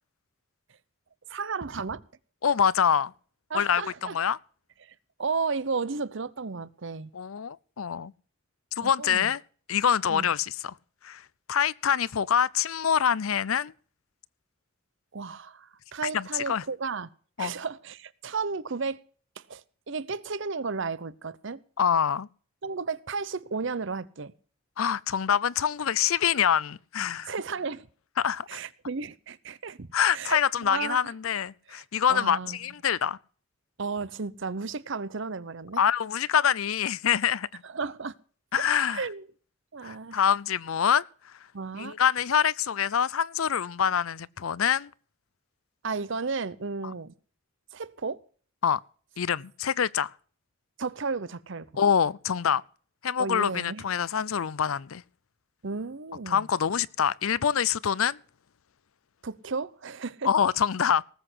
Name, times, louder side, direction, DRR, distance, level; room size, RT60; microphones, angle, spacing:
voice 1, 1.3-2.0 3.5-4.2 4.8-7.1 8.8-9.3 10.1-10.3 15.1-17.1 17.4-19.0 19.4-21.6 22.6-24.3 27.3-27.9 28.5-31.0 31.7-31.8 32.1-32.6 33.8-35.8 37.6-38.1 38.5-38.6 38.9-39.3 39.7-40.2 41.5-41.9 45.8-47.1 47.7-48.2 50.8-51.7 53.2-53.8 55.6-56.5 59.2-60.3, right 4 dB, 60° right, 0.8 m, -33 dB
voice 2, 2.4-3.1 3.5-4.4 7.1-8.1 8.8-9.4 9.7-10.7 11.0-11.2 11.5-13.7 16.1-16.6 17.4-17.5 21.8-22.3 24.8-27.3 28.2-28.6 29.9-33.2 35.8-37.6 38.5-39.0 39.8-41.0 41.8-44.9 48.6-48.8 49.2-50.1 51.8-52.6 53.0-55.0 56.3-58.2 60.2-61.0, left 8 dB, 80° left, 0.6 m, -25 dB
19.0 x 8.1 x 6.2 m
head